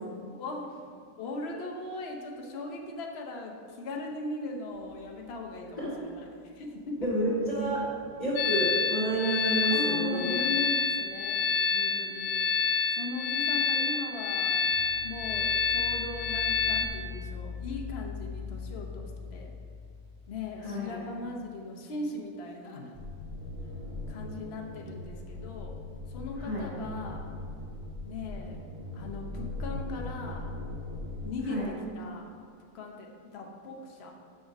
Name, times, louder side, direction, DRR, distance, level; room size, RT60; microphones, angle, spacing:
voice 1, 0.3-0.8 1.2-7.1 9.7-12.5 12.9-14.6 15.0-19.5 20.3-22.9 24.1-25.8 26.1-27.3 28.1-28.6 28.9-30.5 31.2-32.3 32.7-34.1, left 3 dB, 60° left, 1 dB, 0.6 m, -39 dB
sound 1, 4.7-6.2 6.5-6.6 7.0-11.4 14.5-21.6, left 6 dB, 70° right, 3.5 m, -44 dB
voice 2, 7.0-7.8 8.2-10.3 20.6-21.0 26.4-26.7 31.5-31.7, right 1 dB, 15° left, -13 dB, 2.4 m, -29 dB
sound 2, 8.4-16.9, left 5 dB, 75° left, 1.0 m, -28 dB
sound 3, 22.9-31.8, left 2 dB, 25° right, 0.5 m, -40 dB
6.6 x 6.5 x 6.0 m, 2.2 s
omnidirectional pair, 2.4 m